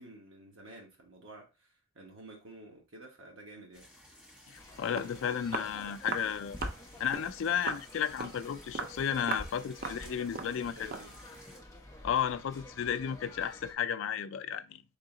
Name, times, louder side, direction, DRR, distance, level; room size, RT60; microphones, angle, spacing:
voice 1, 0.0-3.9 9.6-9.7 10.0-11.1, right 1 dB, 70° right, 1.4 m, -51 dB
sound 1, 3.7-11.6, left 1 dB, 5° right, 1.2 m, -56 dB
voice 2, 4.5-6.6 7.0-10.7 12.0-14.8, left 8 dB, 65° left, 0.3 m, -33 dB
sound 2, 4.6-13.7, left 1 dB, 15° left, 0.7 m, -49 dB
Walk footsteps, 4.6-4.7 5.0-5.1 5.5-5.7 6.1-6.3 6.6-6.8 7.1-7.3 7.7-7.9 8.2-8.4 8.7-9.0 9.3-9.5 9.8-10.0 10.3-10.6 10.9-11.1, right 4 dB, 45° right, 0.4 m, -37 dB
3.8 x 2.8 x 3.8 m
head